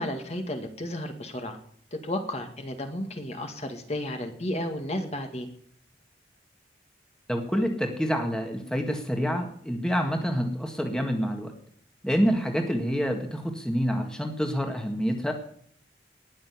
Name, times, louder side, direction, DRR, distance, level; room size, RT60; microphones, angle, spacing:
voice 1, 0.0-1.6 1.9-5.5, left 1 dB, 35° left, 5 dB, 2.0 m, -33 dB
voice 2, 7.3-11.5 12.0-15.3, equal, 5° left, 3 dB, 1.8 m, -27 dB
19.5 x 6.7 x 9.6 m, 0.62 s
head